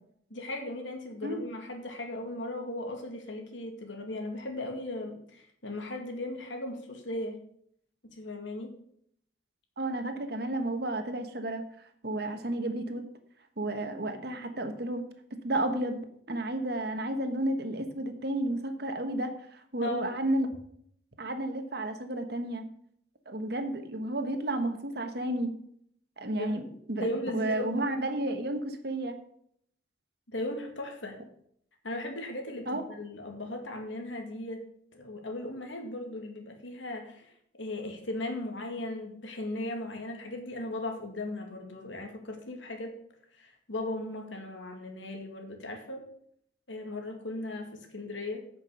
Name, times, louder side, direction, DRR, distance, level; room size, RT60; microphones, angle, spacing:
voice 1, 0.3-7.4 8.1-8.7 19.8-20.1 26.4-26.6 26.9-27.7 30.3-31.2 31.8-34.6 34.9-37.3 37.6-42.9 43.3-46.0 46.7-48.4, left 1 dB, 80° left, 3 dB, 2.1 m, -37 dB
voice 2, 9.8-11.6 12.0-13.0 13.6-15.0 15.4-20.5 21.2-22.6 23.3-25.5 26.2-27.1 27.3-29.1 32.7-32.8, right 1 dB, 55° right, 7 dB, 1.3 m, -32 dB
8.9 x 6.0 x 6.8 m, 0.67 s
head